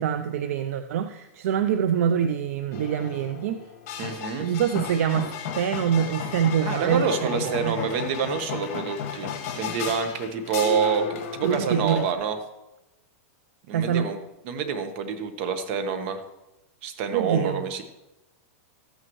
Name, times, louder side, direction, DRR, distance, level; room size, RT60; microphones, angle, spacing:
voice 1, 0.0-3.6 4.4-5.3 5.5-7.8 11.4-12.0 13.7-14.1 17.1-17.6, right 8 dB, 65° right, 9 dB, 0.6 m, -25 dB
sound 1, 2.7-12.1, left 7 dB, 50° left, 2.2 m, -34 dB
voice 2, 4.0-4.5 6.6-12.4 13.7-14.2 14.4-16.2 16.8-17.8, right 6 dB, 50° right, 7 dB, 1.3 m, -27 dB
13.5 x 9.0 x 3.2 m, 0.97 s
supercardioid pair, 150°, 8 cm